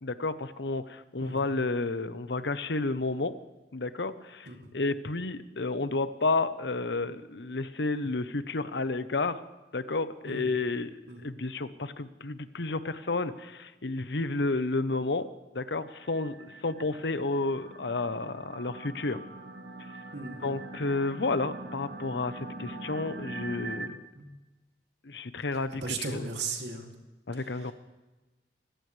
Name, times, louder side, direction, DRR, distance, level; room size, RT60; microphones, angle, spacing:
voice 1, 0.0-3.3 3.7-9.4 9.7-15.3 15.5-19.2 19.8-19.9 20.4-24.0 25.0-26.3 27.3-27.7, left 3 dB, 80° left, 12 dB, 0.9 m, -31 dB
voice 2, 10.3-10.6 11.1-11.3 20.1-20.5 24.1-24.3 25.8-26.9 27.4-27.7, right 3 dB, 80° right, 2 dB, 2.7 m, -37 dB
sound 1, 15.9-23.9, right 2 dB, 65° right, 1.2 m, -43 dB
25.0 x 15.5 x 3.4 m, 1.1 s
head